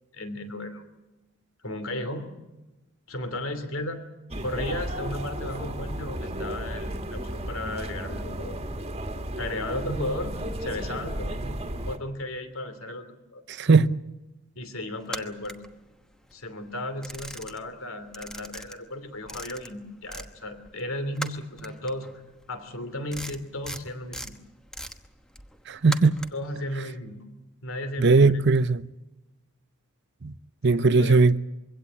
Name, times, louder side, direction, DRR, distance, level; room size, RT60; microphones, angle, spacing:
voice 1, 0.1-0.8 1.6-2.3 3.1-4.0 4.4-8.6 9.4-11.6 11.9-13.0 13.3-13.4 14.6-15.6 16.3-22.2 22.5-24.3 26.3-27.2 27.6-28.4 30.7-31.2, left 1 dB, 65° left, 3.0 m, -34 dB
sound 1, 4.3-12.0, right 1 dB, 25° right, 1.8 m, -34 dB
voice 2, 13.5-13.9 25.7-26.2 28.0-28.8 30.2-30.3 30.6-31.4, right 3 dB, 50° right, 0.7 m, -19 dB
sound 2, 15.0-16.3 16.7-17.8 18.1-20.3 20.6-26.5, equal, 5° left, 1.0 m, -40 dB
23.5 x 16.5 x 8.8 m
head